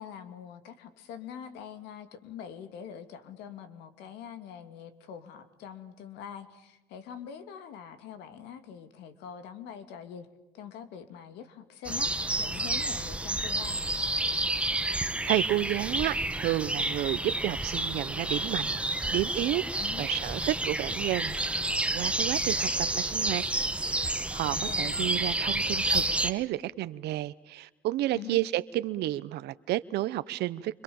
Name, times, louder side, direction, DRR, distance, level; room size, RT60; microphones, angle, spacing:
voice 1, 0.0-10.3 10.5-12.1 12.4-13.8 19.8-20.1 24.5-24.9 28.1-28.4, left 8 dB, 90° left, 10 dB, 2.7 m, -44 dB
sound 1, 11.8-26.3, right 2 dB, 5° right, 1.4 m, -30 dB
voice 2, 14.9-18.8 19.1-19.6 20.0-21.3 21.9-23.5 23.9-30.8, right 15 dB, 80° right, 15 dB, 0.9 m, -31 dB
29.0 x 26.0 x 7.1 m, 0.97 s
cardioid pair, 110°, 17 cm